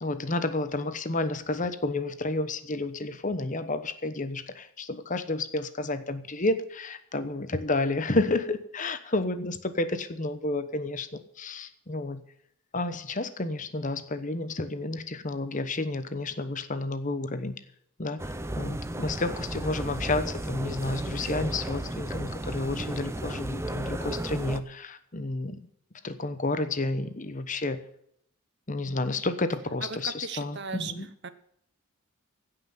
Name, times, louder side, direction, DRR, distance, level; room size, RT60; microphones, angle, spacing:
voice 1, 0.0-12.2 12.7-17.6 18.0-25.6 26.0-27.8 28.7-31.1, left 2 dB, 35° left, 11 dB, 1.0 m, -31 dB
sound 1, 18.2-24.6, right 1 dB, 10° right, 0.6 m, -34 dB
voice 2, 30.0-30.9 31.2-31.3, right 5 dB, 50° right, 12 dB, 0.9 m, -36 dB
16.0 x 5.9 x 9.3 m, 0.70 s
head